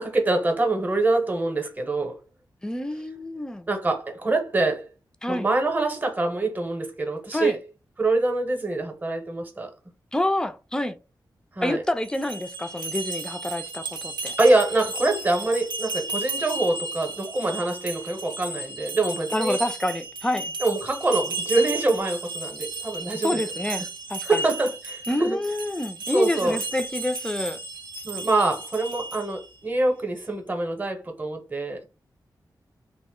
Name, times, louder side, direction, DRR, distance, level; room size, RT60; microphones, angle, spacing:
voice 1, 0.0-2.2 3.7-4.9 5.3-7.6 8.0-9.7 11.6-11.8 14.4-19.6 20.6-23.4 24.2-25.4 26.1-26.6 28.0-31.9, right 2 dB, 20° right, 0.8 m, -25 dB
voice 2, 2.6-3.7 5.2-5.5 7.3-7.6 10.1-11.0 11.6-14.4 19.3-20.5 23.2-24.4 25.1-27.6, left 1 dB, 10° left, 0.3 m, -28 dB
sound 1, 12.0-29.5, right 3 dB, 80° right, 0.6 m, -34 dB
2.5 x 2.0 x 3.7 m
wide cardioid pair, 85°, 8 cm